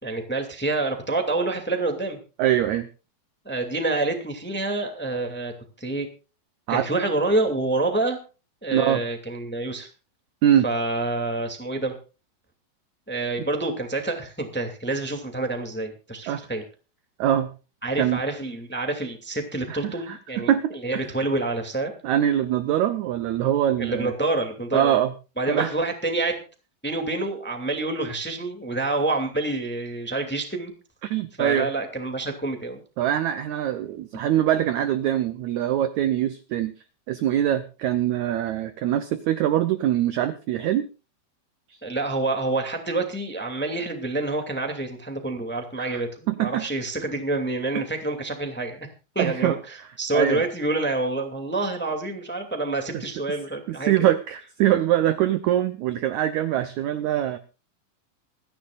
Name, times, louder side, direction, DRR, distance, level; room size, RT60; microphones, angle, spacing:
voice 1, 0.0-2.2 3.4-5.5 5.8-6.1 6.7-8.2 8.6-9.9 10.6-12.0 13.1-16.7 17.8-20.5 20.8-21.9 23.8-25.0 25.4-26.4 26.8-30.7 31.4-32.8 41.8-48.9 49.1-53.9, right 2 dB, 5° left, 4 dB, 1.4 m, -27 dB
voice 2, 2.4-2.9 6.7-6.9 8.7-9.0 10.4-10.7 16.3-16.4 17.2-17.5 17.9-18.2 19.7-21.0 22.0-24.1 24.7-25.1 25.5-25.7 31.0-31.7 33.0-36.7 37.1-40.9 41.7-41.8 45.8-46.0 46.3-46.6 49.2-49.5 50.1-50.4 52.9-53.0 53.7-57.4, right 11 dB, 85° right, 10 dB, 1.6 m, -23 dB
26.5 x 10.5 x 2.5 m, 0.33 s
omnidirectional pair, 4.4 m